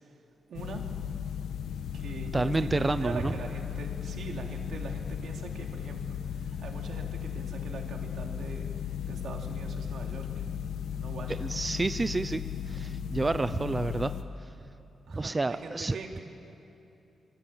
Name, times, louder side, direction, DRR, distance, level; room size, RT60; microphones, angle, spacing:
sound 1, 0.5-14.2, left 8 dB, 85° left, 1.3 m, -36 dB
voice 1, 0.5-0.9 1.9-10.3 11.0-11.5 13.8-13.9 15.1-16.2, right 4 dB, 75° right, 2 dB, 3.4 m, -43 dB
voice 2, 2.3-3.3 11.4-12.4 12.7-14.1 15.1-16.0, right 2 dB, 25° right, 11 dB, 0.7 m, -29 dB
27.5 x 22.5 x 9.0 m, 2.8 s
cardioid pair, 80°, 0 cm